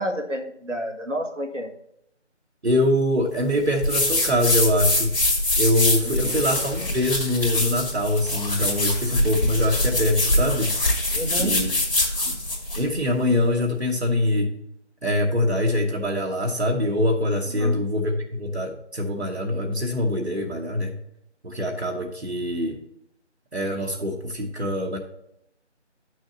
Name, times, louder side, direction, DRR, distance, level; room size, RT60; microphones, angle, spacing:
voice 1, 0.0-1.7 6.2-6.3 11.1-11.6 17.6-17.8, right 1 dB, 90° right, 3 dB, 1.5 m, -29 dB
voice 2, 2.6-5.1 5.6-10.8 11.4-11.7 12.3-12.4 12.7-14.5 15.0-20.9 21.4-22.8 23.5-25.0, left 1 dB, 65° right, 2 dB, 1.3 m, -24 dB
sound 1, 3.8-12.9, left 1 dB, 50° left, 2.0 m, -24 dB
8.5 x 6.3 x 3.9 m, 0.77 s
figure-of-eight pair, 165°, 36 cm